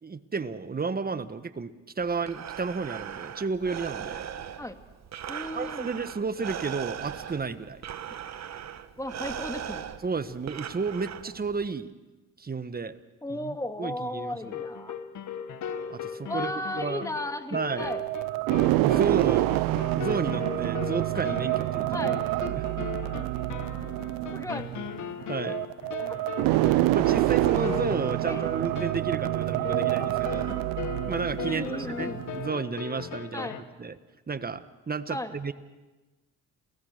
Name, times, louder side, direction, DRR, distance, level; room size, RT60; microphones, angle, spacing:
voice 1, 0.0-4.3 5.5-7.8 10.0-11.9 12.4-12.9 13.3-14.4 15.9-17.1 17.5-17.9 18.8-22.1 22.5-22.6 25.3-25.6 26.9-30.6 31.1-33.5 33.8-34.0 34.3-35.5, right 5 dB, 25° right, 12 dB, 1.4 m, -32 dB
Breathing, 2.0-11.7, right 9 dB, 50° right, 1.4 m, -39 dB
voice 2, 5.3-5.9 8.1-8.2 9.0-9.9 13.2-15.0 16.3-18.0 21.9-22.2 24.3-24.7 26.0-26.2 28.2-28.5 31.4-32.2 33.3-33.6 35.1-35.3, left 1 dB, 10° left, 8 dB, 2.1 m, -35 dB
sound 1, 14.4-33.6, left 8 dB, 60° left, 1.7 m, -38 dB
sound 2, 17.8-32.5, right 19 dB, 85° right, 0.6 m, -27 dB
28.0 x 18.0 x 6.6 m, 1.2 s
supercardioid pair, 70°, 34 cm